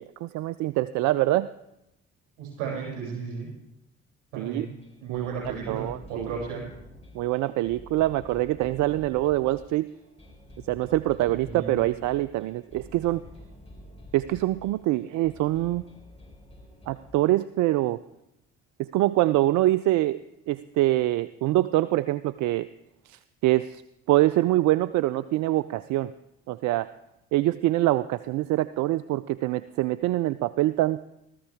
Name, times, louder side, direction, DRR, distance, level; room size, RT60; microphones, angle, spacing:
voice 1, 0.0-1.5 4.4-4.7 5.1-6.3 7.1-9.9 10.7-13.2 14.1-15.8 16.9-18.0 18.8-20.2 20.5-22.7 23.1-23.8 24.1-26.1 26.5-26.9 27.3-31.0, right 16 dB, 60° right, 15 dB, 0.5 m, -25 dB
voice 2, 2.4-3.5 4.3-4.7 5.0-6.6 11.3-11.8, right 5 dB, 75° right, -2 dB, 7.0 m, -34 dB
sound 1, 4.8-17.1, left 1 dB, 20° left, 5.2 m, -48 dB
16.5 x 14.0 x 3.5 m, 0.84 s
hypercardioid pair, 50°, 33 cm